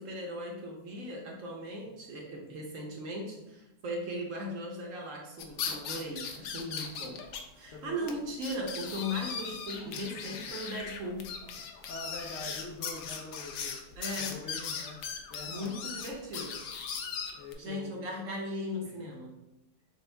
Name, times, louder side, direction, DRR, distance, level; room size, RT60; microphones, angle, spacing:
voice 1, 0.0-7.2 7.6-11.3 14.0-14.4 15.5-16.6 17.6-19.3, equal, 60° right, -1 dB, 1.0 m, -38 dB
sound 1, 5.4-7.4 7.7-7.8 8.1-8.2 8.4-17.5, left 6 dB, 85° left, 1.2 m, -38 dB
voice 2, 7.7-8.2 9.8-10.6 11.9-13.8 14.2-15.0 15.3-15.8 17.4-18.1 18.8-19.1, left 2 dB, 65° left, -2 dB, 0.8 m, -45 dB
6.7 x 2.4 x 3.3 m, 0.95 s
omnidirectional pair, 1.8 m